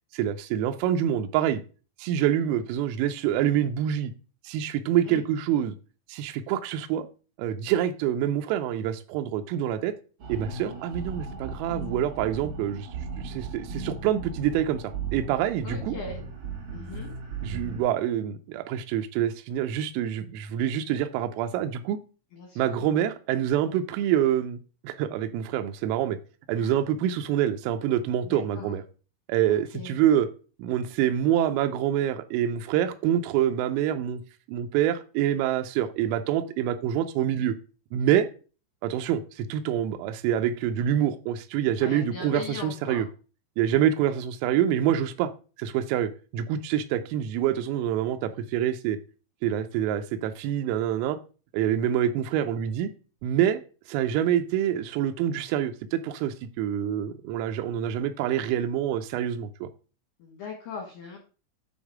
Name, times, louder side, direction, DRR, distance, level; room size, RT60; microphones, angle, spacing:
voice 1, 0.1-1.6 2.0-4.1 4.4-5.7 6.1-7.1 7.4-9.9 10.3-12.9 13.2-15.9 17.4-22.0 22.6-26.2 26.5-28.8 29.3-30.3 30.6-34.2 34.5-37.5 37.9-38.3 38.8-43.1 43.6-45.3 45.6-49.0 49.4-51.2 51.5-52.9 53.2-53.6 53.9-59.7, right 10 dB, 85° right, 3.3 m, -26 dB
sound 1, 10.2-17.8, right 4 dB, 50° right, 3.6 m, -36 dB
voice 2, 15.6-16.3 16.7-17.1 22.3-22.7 26.5-26.8 28.2-28.8 29.5-30.0 41.8-43.1 60.2-61.2, left 5 dB, 75° left, 2.1 m, -39 dB
9.1 x 3.5 x 4.8 m
omnidirectional pair, 5.9 m